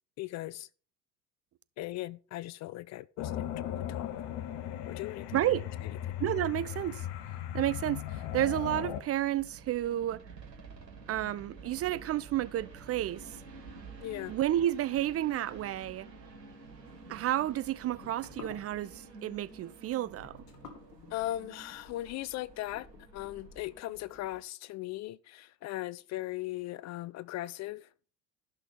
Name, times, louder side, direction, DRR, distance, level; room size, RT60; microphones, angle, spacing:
voice 1, 0.2-0.7 1.8-4.1 4.9-5.4 5.8-6.1 14.0-14.4 21.1-27.9, left 16 dB, 40° left, 0.4 m, -39 dB
sound 1, 3.2-9.0, left 11 dB, 55° left, 1.2 m, -37 dB
voice 2, 5.3-5.6 6.2-7.0 7.5-10.2 11.1-13.3 14.3-16.1 17.1-20.4, right 13 dB, 30° right, 0.5 m, -31 dB
sound 2, 7.1-24.4, right 4 dB, 90° right, 1.7 m, -51 dB
sound 3, 16.7-23.8, left 5 dB, 75° left, 2.3 m, -53 dB
14.0 x 6.1 x 5.3 m
figure-of-eight pair, 60°, 48 cm